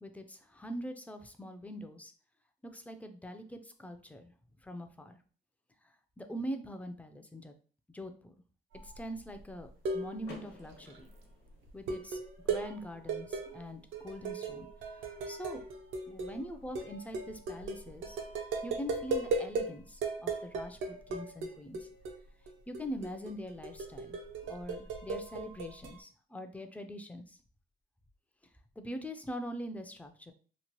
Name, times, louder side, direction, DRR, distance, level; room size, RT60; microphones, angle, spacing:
voice 1, 0.0-2.1 2.6-4.3 4.6-5.2 6.2-7.5 7.9-8.3 8.8-11.1 11.7-14.7 14.9-15.6 16.1-18.2 18.6-21.9 22.7-24.2 24.4-27.4 28.8-30.3, equal, 5° left, 6 dB, 0.4 m, -43 dB
sound 1, 8.7-9.0 9.4-10.3 10.6-11.0 11.7-19.7 20.0-22.2 22.5-26.0, right 3 dB, 75° right, 0.6 m, -37 dB
Car / Door, 10.2-12.2, left 3 dB, 60° left, 1.0 m, -52 dB
2.9 x 2.1 x 2.9 m, 0.41 s
cardioid pair, 90°, 20 cm